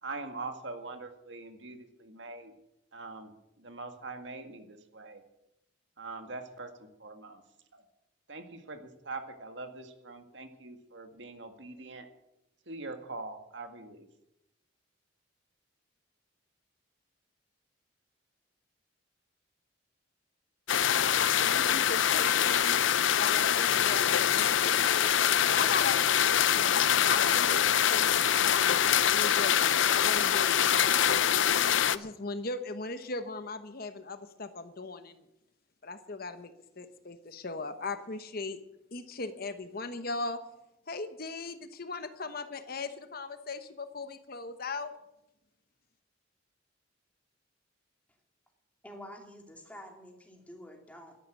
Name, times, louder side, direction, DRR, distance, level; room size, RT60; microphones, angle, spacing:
voice 1, 0.0-2.5 2.9-3.3 3.6-5.2 6.0-7.4 7.7-7.8 8.3-12.1 12.7-14.1, right 3 dB, 65° right, 6 dB, 1.9 m, -43 dB
sound 1, 20.7-32.0, left 9 dB, 75° left, 0.6 m, -24 dB
voice 2, 21.4-22.8 23.1-26.0 26.6-27.6 27.9-28.4 29.1-31.3 31.9-35.2 35.8-38.6 38.9-40.4 40.9-44.9, left 3 dB, 50° left, 10 dB, 1.0 m, -38 dB
voice 3, 48.8-51.2, equal, 5° left, 2 dB, 2.8 m, -48 dB
12.5 x 11.5 x 8.7 m, 0.86 s
head